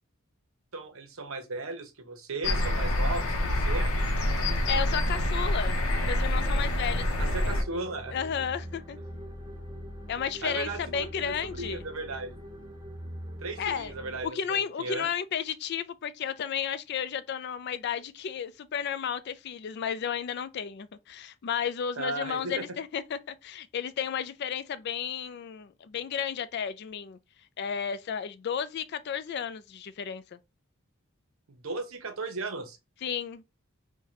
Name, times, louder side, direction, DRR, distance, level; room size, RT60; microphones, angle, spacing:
voice 1, 0.7-3.9 7.2-8.2 10.4-12.4 13.4-15.1 22.0-22.8 31.5-32.8, right 3 dB, 75° right, 0.8 m, -36 dB
sound 1, 2.4-7.6, left 1 dB, 85° left, 0.7 m, -26 dB
voice 2, 4.7-7.1 8.1-9.0 10.1-11.8 13.6-13.9 14.2-27.2 27.6-30.4 33.0-33.4, left 7 dB, 50° left, 0.3 m, -33 dB
sound 2, 5.9-14.3, equal, 20° right, 0.4 m, -43 dB
4.7 x 2.2 x 2.8 m
head